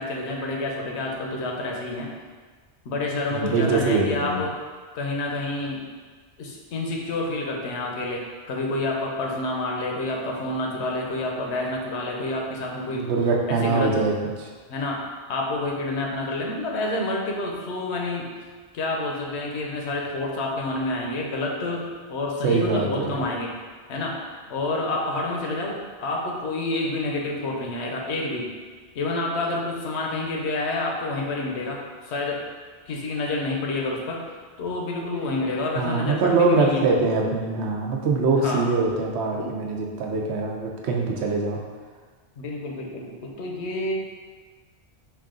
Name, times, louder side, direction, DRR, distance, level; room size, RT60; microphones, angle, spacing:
voice 1, 0.0-2.1 2.8-4.5 4.9-5.8 6.4-13.1 13.5-14.0 14.7-15.0 15.3-18.3 18.7-23.5 23.9-24.2 24.5-28.5 28.9-32.4 32.9-34.2 34.6-36.8 38.4-38.7 39.4-39.6 42.4-43.9, left 2 dB, 80° left, -1 dB, 1.0 m, -28 dB
voice 2, 3.3-4.4 12.9-14.5 22.4-23.2 35.8-41.6, right 3 dB, 80° right, 0 dB, 0.9 m, -23 dB
4.6 x 2.4 x 3.7 m, 1.5 s
omnidirectional pair, 1.1 m